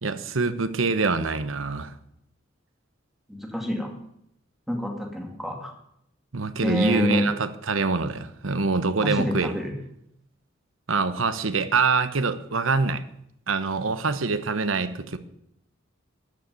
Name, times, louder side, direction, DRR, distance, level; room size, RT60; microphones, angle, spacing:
voice 1, 0.0-1.9 6.3-9.6 10.9-13.0 13.5-15.2, right 4 dB, 85° right, 12 dB, 1.0 m, -25 dB
voice 2, 3.3-3.9 4.7-5.7 6.6-7.3 9.0-9.7, left 1 dB, ahead, 1 dB, 2.4 m, -27 dB
13.5 x 6.8 x 9.6 m, 0.75 s
head